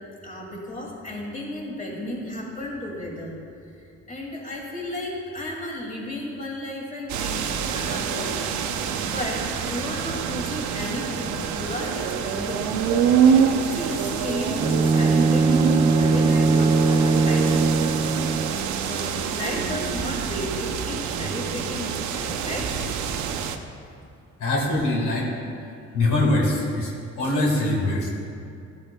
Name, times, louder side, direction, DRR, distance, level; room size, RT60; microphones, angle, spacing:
voice 1, 0.2-3.4 4.1-8.4 8.7-12.7 13.0-17.7 18.8-22.7, left 1 dB, 25° left, -2 dB, 2.3 m, -33 dB
sound 1, 7.1-23.6, right 7 dB, 70° right, 0.7 m, -26 dB
Bowed string instrument, 14.6-18.6, right 3 dB, 15° right, 0.3 m, -20 dB
voice 2, 24.4-25.3 25.9-26.9 27.2-28.1, left 2 dB, 80° left, -2 dB, 1.8 m, -22 dB
13.5 x 8.9 x 2.2 m, 2.4 s
cardioid pair, 90°, 30 cm